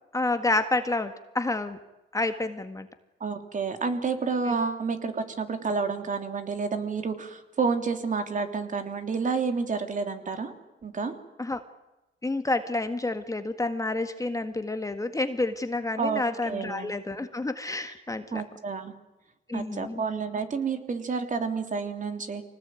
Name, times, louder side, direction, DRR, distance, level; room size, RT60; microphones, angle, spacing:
voice 1, 0.1-1.8 2.1-2.9 4.4-4.5 11.4-11.6 12.2-18.4 19.5-20.0, left 2 dB, 15° left, 8 dB, 1.7 m, -29 dB
voice 2, 3.2-10.5 10.8-11.1 16.0-16.9 18.3-18.9 19.5-22.4, right 5 dB, 40° right, 7 dB, 3.3 m, -30 dB
25.0 x 19.0 x 9.1 m, 1.0 s
cardioid pair, 90°, 20 cm